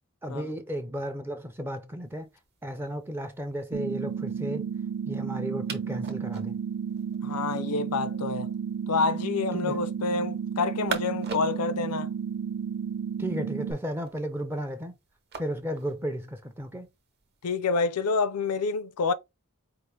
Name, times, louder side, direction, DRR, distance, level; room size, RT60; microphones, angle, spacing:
voice 1, 0.2-2.3 2.6-4.7 5.1-6.6 9.5-9.8 13.2-15.0 15.4-16.9, equal, 10° right, 0.4 m, -34 dB
sound 1, 2.0-17.5, right 5 dB, 50° right, 1.0 m, -46 dB
sound 2, 3.7-13.7, right 7 dB, 90° right, 0.8 m, -32 dB
voice 2, 7.2-8.5 8.9-12.1 17.4-19.1, left 4 dB, 80° left, 0.5 m, -28 dB
4.7 x 2.5 x 3.3 m
head